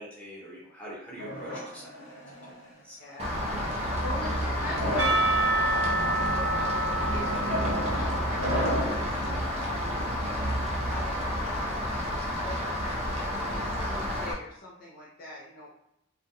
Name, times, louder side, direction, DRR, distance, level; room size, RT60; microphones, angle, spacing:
voice 1, 0.0-1.9 2.4-2.5 2.8-3.0 8.9-9.3, equal, 5° left, -6 dB, 0.7 m, -44 dB
sound 1, 1.2-2.6 3.4-3.8 4.6-5.3 6.0-6.3 7.2-9.1, equal, 60° left, 0.8 m, -33 dB
voice 2, 3.0-8.8 9.5-15.7, left 2 dB, 40° left, -5 dB, 0.4 m, -44 dB
Rain, 3.2-14.3, equal, 30° right, 0.4 m, -30 dB
Percussion / Church bell, 5.0-9.8, right 2 dB, 65° right, 0.6 m, -29 dB
2.3 x 2.0 x 2.7 m, 0.81 s
head